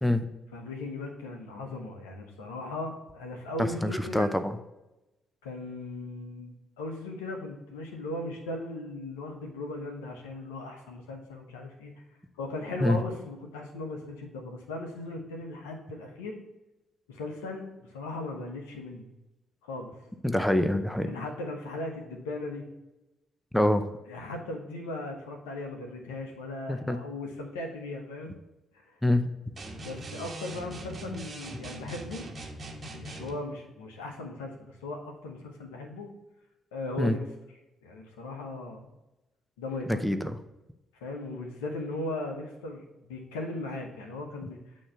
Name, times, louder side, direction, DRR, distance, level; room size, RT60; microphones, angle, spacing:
voice 1, 0.5-4.3 5.4-11.9 12.4-16.4 17.1-19.1 19.6-19.9 21.0-22.6 24.1-28.3 28.7-29.0 29.8-32.3 32.9-36.1 36.7-37.2 37.8-38.9 39.6-40.0 40.9-44.6, left 2 dB, 85° left, 2 dB, 1.0 m, -38 dB
voice 2, 3.6-4.5 12.8-13.0 20.2-21.2 23.5-23.9 26.7-27.0 29.0-29.2 37.0-37.2 39.9-40.3, left 1 dB, 5° left, 10 dB, 0.7 m, -25 dB
sound 1, 29.6-33.4, right 1 dB, 40° right, 1.2 m, -41 dB
8.6 x 3.1 x 5.6 m, 0.98 s
hypercardioid pair, 45°, 0 cm